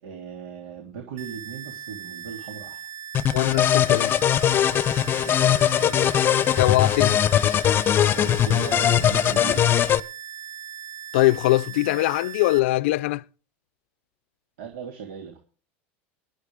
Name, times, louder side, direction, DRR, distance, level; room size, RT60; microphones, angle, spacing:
voice 1, 0.0-2.8 5.2-6.1 8.1-9.7 14.6-15.4, right 7 dB, 80° right, 3.4 m, -37 dB
sound 1, 1.2-12.6, right 9 dB, 50° right, 2.7 m, -39 dB
sound 2, 3.1-10.0, left 10 dB, 35° left, 0.7 m, -20 dB
voice 2, 3.3-4.2 6.5-7.2 11.1-13.2, left 18 dB, 80° left, 0.5 m, -22 dB
21.0 x 9.0 x 3.7 m
supercardioid pair, 120°, 6 cm